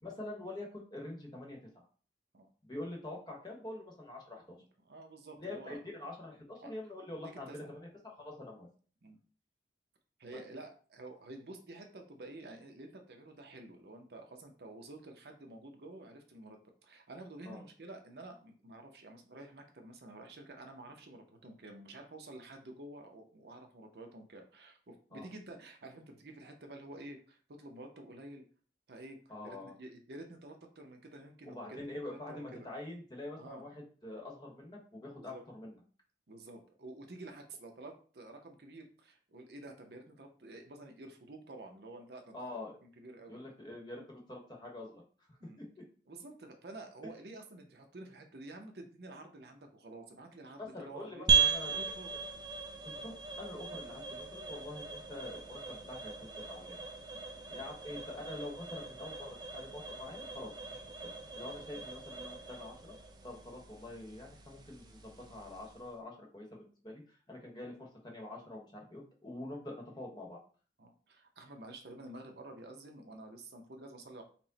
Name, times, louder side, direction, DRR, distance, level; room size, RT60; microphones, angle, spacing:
voice 1, 0.0-1.8 2.6-4.6 5.4-8.7 10.3-10.4 17.4-17.6 25.1-25.3 29.3-29.7 31.4-35.7 42.3-42.8 43.3-45.3 45.6-45.8 47.0-47.1 50.6-51.9 52.8-56.8 57.5-62.9 63.2-70.4, left 2 dB, 25° left, 0 dB, 1.0 m, -46 dB
voice 2, 4.6-5.8 6.6-6.7 7.2-7.7 9.0-9.2 10.2-28.4 28.9-32.7 33.4-33.6 35.2-35.4 36.3-42.4 42.8-43.4 45.4-45.6 46.1-52.2 57.1-57.2 61.7-61.8 70.8-74.2, right 2 dB, 65° right, 3 dB, 0.7 m, -50 dB
sound 1, 51.3-65.9, right 5 dB, 25° right, 0.5 m, -37 dB
4.4 x 2.1 x 3.9 m, 0.41 s
head